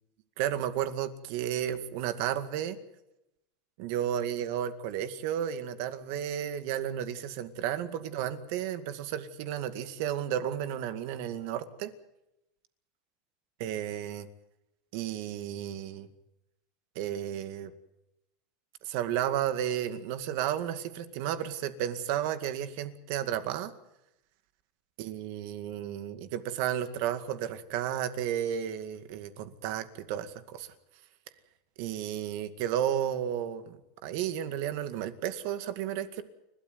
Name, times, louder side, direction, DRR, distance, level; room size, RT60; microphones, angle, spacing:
voice 1, 0.4-2.8 3.8-11.9 13.6-14.3 14.9-16.1 17.0-17.7 18.8-23.7 25.0-30.7 31.8-36.2, right 10 dB, 55° right, 11 dB, 2.1 m, -33 dB
29.5 x 13.0 x 9.5 m, 0.87 s
supercardioid pair, 165°, 0 cm